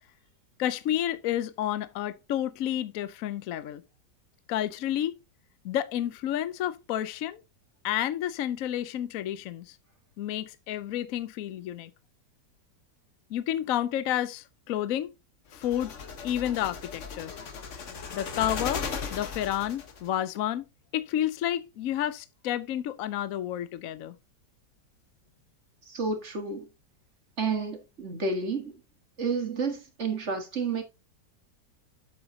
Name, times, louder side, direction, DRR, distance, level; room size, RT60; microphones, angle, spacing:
voice 1, 0.6-3.8 4.5-5.1 5.6-7.4 7.8-9.8 10.2-11.9 13.3-15.1 15.5-15.9 16.2-17.3 18.1-18.9 19.1-20.6 20.9-24.1, left 11 dB, 65° left, 0.9 m, -30 dB
sound 1, 15.5-20.1, left 5 dB, 50° left, 1.3 m, -37 dB
voice 2, 25.9-26.7 27.4-28.7 29.2-30.8, right 4 dB, 45° right, 1.7 m, -30 dB
8.0 x 7.5 x 2.7 m
omnidirectional pair, 1.9 m